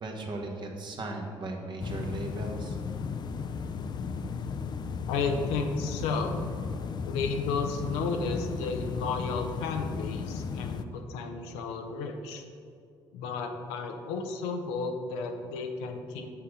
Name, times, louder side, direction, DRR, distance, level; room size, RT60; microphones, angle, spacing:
voice 1, 0.0-2.8, right 2 dB, 50° right, 1 dB, 1.2 m, -37 dB
sound 1, 1.8-10.8, left 5 dB, 45° left, 0.4 m, -35 dB
voice 2, 5.1-6.4 7.0-12.4 13.1-16.3, left 4 dB, 90° left, 4 dB, 0.6 m, -33 dB
6.0 x 5.7 x 4.9 m, 2.4 s
supercardioid pair, 75°, 10 cm